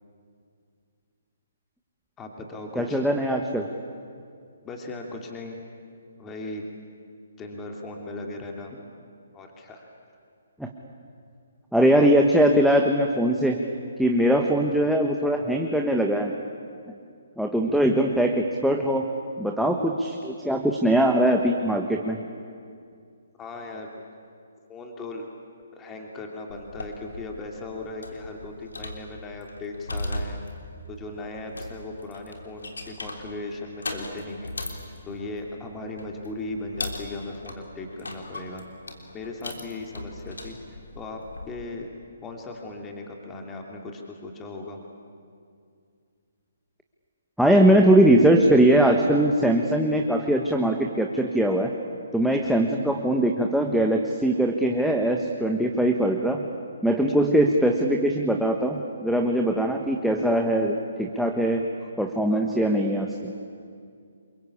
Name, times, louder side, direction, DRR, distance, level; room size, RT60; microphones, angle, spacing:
voice 1, 2.2-3.0 4.6-5.6 6.2-6.6 7.4-8.8 9.3-9.8 12.0-12.1 23.4-23.9 24.7-25.3 25.7-30.4 30.9-34.5 35.1-38.6 39.1-41.2 41.5-41.9 42.2-44.8 52.3-52.5 57.1-57.3 61.8-61.9 62.3-62.4, left 2 dB, 15° left, 1 dB, 2.8 m, -37 dB
voice 2, 2.8-3.7 10.6-10.7 11.7-13.6 14.0-16.3 17.4-19.1 19.4-22.2 47.4-51.7 52.1-56.4 56.8-61.7 62.0-63.3, right 1 dB, ahead, 1 dB, 1.3 m, -21 dB
sound 1, 26.5-41.5, left 1 dB, 85° left, 3.5 m, -38 dB
28.0 x 23.0 x 8.6 m, 2.3 s
hypercardioid pair, 140°, 0 cm